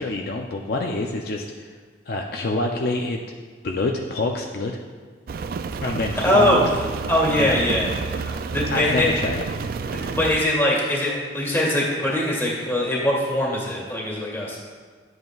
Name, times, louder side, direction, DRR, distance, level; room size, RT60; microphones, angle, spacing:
voice 1, 0.0-1.7 2.1-3.2 3.6-4.8 5.8-6.6 7.4-7.6 8.7-9.5, left 2 dB, 55° left, 1 dB, 0.5 m, -26 dB
Rain, 5.3-10.4, right 5 dB, 55° right, 0.3 m, -30 dB
voice 2, 6.2-6.6 7.1-9.1 9.9-14.6, left 1 dB, 15° left, -4 dB, 1.8 m, -22 dB
11.0 x 7.8 x 2.4 m, 1.5 s
head